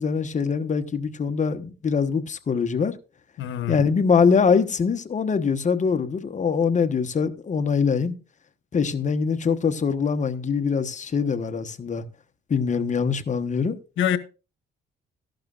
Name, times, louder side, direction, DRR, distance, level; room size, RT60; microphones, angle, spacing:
voice 1, 0.0-2.9 3.7-8.1 8.7-12.0 12.5-13.8, left 5 dB, 40° left, 1.2 m, -23 dB
voice 2, 3.4-3.8 14.0-14.2, left 10 dB, 75° left, 1.2 m, -24 dB
14.0 x 11.5 x 2.5 m
cardioid pair, 90°, 20 cm